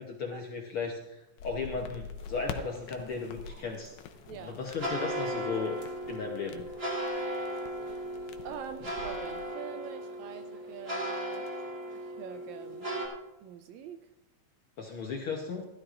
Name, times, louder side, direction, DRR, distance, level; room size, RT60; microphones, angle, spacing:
voice 1, 0.0-3.9 4.3-5.8 6.1-6.7 14.8-15.7, left 5 dB, 65° left, 1 dB, 1.4 m, -36 dB
sound 1, 1.4-9.5, left 6 dB, 85° left, 2.2 m, -46 dB
sound 2, 2.2-13.1, right 1 dB, 25° right, 1.7 m, -37 dB
voice 2, 4.3-4.6 8.4-11.5 11.9-12.9 13.4-14.0, right 8 dB, 80° right, 8 dB, 1.8 m, -44 dB
16.0 x 12.5 x 2.5 m, 0.94 s
omnidirectional pair, 3.6 m